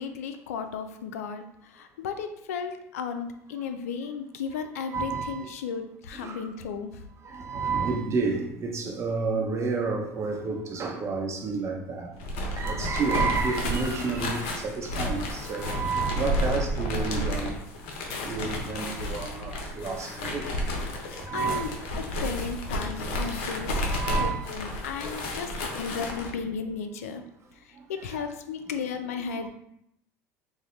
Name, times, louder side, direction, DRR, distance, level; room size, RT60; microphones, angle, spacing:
voice 1, 0.0-7.0 21.3-27.2 27.6-29.5, left 6 dB, 90° left, 0.3 m, -35 dB
voice 2, 4.9-5.5 6.1-6.5 7.2-12.1 12.4-17.6 18.2-20.5 21.2-21.7 23.9-24.5 28.1-28.3, right 4 dB, 35° right, 0.7 m, -30 dB
sound 1, 12.1-26.3, left 1 dB, 70° left, 0.7 m, -31 dB
3.9 x 2.1 x 3.1 m
hypercardioid pair, 85°, 8 cm